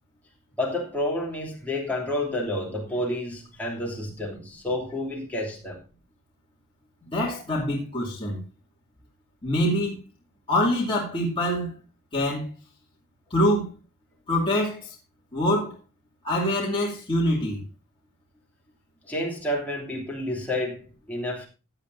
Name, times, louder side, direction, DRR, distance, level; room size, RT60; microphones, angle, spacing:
voice 1, 0.6-5.8 19.1-21.5, left 1 dB, 5° left, 2.9 m, -30 dB
voice 2, 7.1-8.4 9.4-10.0 10.5-11.7 12.1-12.5 13.3-13.7 14.3-14.8 15.3-15.7 16.2-17.6, left 1 dB, 25° left, 2.7 m, -24 dB
16.0 x 8.8 x 2.7 m
head